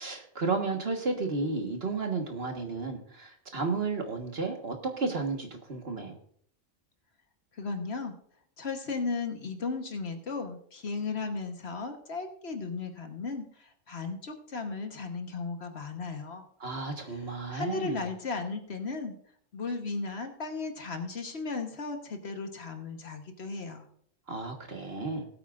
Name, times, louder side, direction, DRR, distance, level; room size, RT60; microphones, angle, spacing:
voice 1, 0.0-6.2 16.6-18.1 24.3-25.3, right 3 dB, 50° right, 3 dB, 1.7 m, -33 dB
voice 2, 7.6-8.2 8.6-16.4 17.5-19.1 19.5-23.8, left 4 dB, 55° left, 5 dB, 1.4 m, -35 dB
19.5 x 8.6 x 2.5 m, 0.62 s
omnidirectional pair, 1.3 m